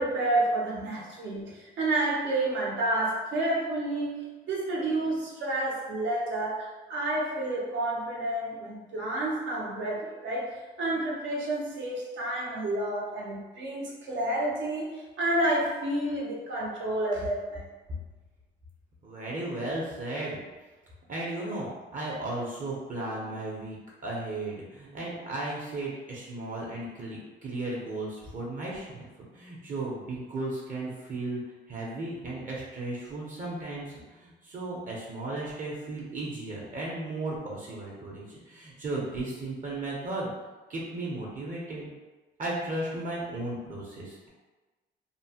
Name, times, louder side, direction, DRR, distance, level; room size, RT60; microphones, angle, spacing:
voice 1, 0.0-10.5 10.8-17.6, right 1 dB, 70° right, -3 dB, 0.8 m, -30 dB
voice 2, 19.0-20.4 21.1-23.8 24.0-29.1 29.3-31.4 31.7-40.3 40.7-41.9 42.4-44.3, right 2 dB, 40° right, -4 dB, 0.8 m, -35 dB
2.9 x 2.0 x 2.8 m, 1.2 s
cardioid pair, 90°, 20 cm